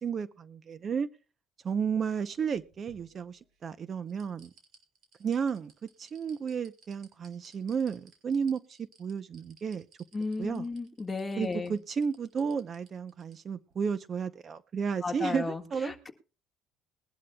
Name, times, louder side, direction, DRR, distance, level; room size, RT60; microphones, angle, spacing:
voice 1, 0.0-1.1 1.6-4.5 5.2-5.7 6.0-9.9 10.4-10.6 11.4-15.9, right 6 dB, 40° right, 0.7 m, -32 dB
sound 1, 2.3-3.6 4.1-13.3 13.7-13.8, right 4 dB, 55° right, 5.6 m, -60 dB
voice 2, 10.1-11.7 15.0-16.1, left 3 dB, 20° left, 1.7 m, -34 dB
21.0 x 12.0 x 2.3 m
cardioid pair, 115°, 0 cm